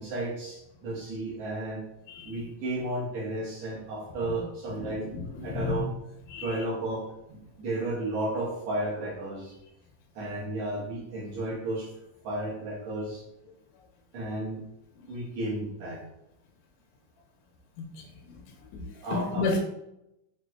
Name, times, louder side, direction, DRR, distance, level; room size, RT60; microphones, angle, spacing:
voice 1, 0.0-1.8 2.2-5.1 5.4-5.9 6.4-9.5 10.2-11.9 12.2-13.2 14.1-14.6 15.1-16.0 19.0-19.6, right 2 dB, 70° right, -5 dB, 1.8 m, -33 dB
voice 2, 2.1-2.4 4.7-5.8 6.3-6.6 17.8-18.4 18.7-19.6, left 4 dB, 85° left, 2 dB, 2.0 m, -33 dB
5.9 x 2.1 x 2.3 m, 0.86 s
omnidirectional pair, 3.4 m